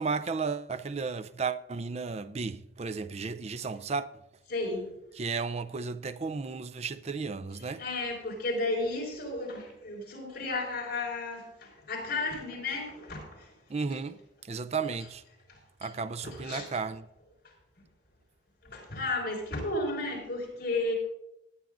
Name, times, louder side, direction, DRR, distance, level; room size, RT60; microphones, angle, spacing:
voice 1, 0.0-4.1 5.2-7.8 13.7-14.2 14.5-15.2 15.8-17.1, right 4 dB, 35° right, 0.5 m, -33 dB
voice 2, 4.5-4.9 7.6-13.5 13.9-14.0 15.8-15.9 16.2-16.7 18.6-20.9, left 2 dB, 60° left, 4.7 m, -33 dB
18.5 x 10.5 x 2.6 m
head